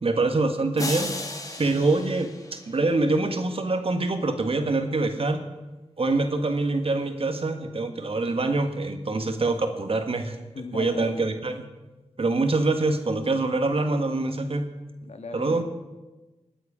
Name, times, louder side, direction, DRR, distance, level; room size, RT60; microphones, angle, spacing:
voice 1, 0.0-1.1 1.6-5.4 6.0-10.4 10.7-11.5 12.2-14.7 15.3-15.6, right 2 dB, 50° right, 7 dB, 1.5 m, -25 dB
sound 1, 0.8-3.1, left 1 dB, 30° left, 1.8 m, -35 dB
voice 2, 10.5-11.2 15.0-15.6, left 3 dB, 65° left, 7 dB, 1.5 m, -37 dB
20.5 x 8.1 x 5.0 m, 1.1 s
wide cardioid pair, 70°, 12 cm